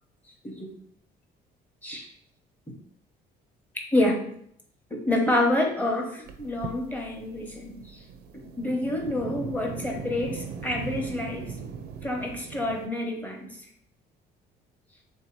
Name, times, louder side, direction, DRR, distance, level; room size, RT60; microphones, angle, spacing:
voice 1, 3.9-4.2 4.9-8.0 8.3-11.6 12.0-13.6, left 1 dB, 10° left, 1 dB, 0.9 m, -28 dB
sound 1, 6.3-12.9, right 5 dB, 70° right, 0.5 m, -39 dB
3.5 x 2.8 x 4.5 m, 0.69 s
cardioid pair, 110°, 17 cm